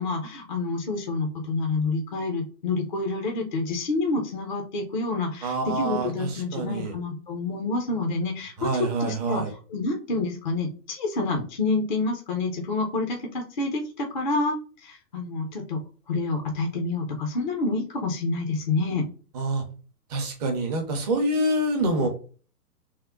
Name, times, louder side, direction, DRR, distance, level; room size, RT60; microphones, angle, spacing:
voice 1, 0.0-9.4 9.7-15.8 16.1-19.1, left 3 dB, 35° left, 2 dB, 0.4 m, -28 dB
voice 2, 5.4-6.9 8.6-9.5 19.3-19.6 20.1-22.1, right 2 dB, 25° right, 3 dB, 0.6 m, -26 dB
3.6 x 2.0 x 3.6 m, 0.38 s
hypercardioid pair, 140°, 48 cm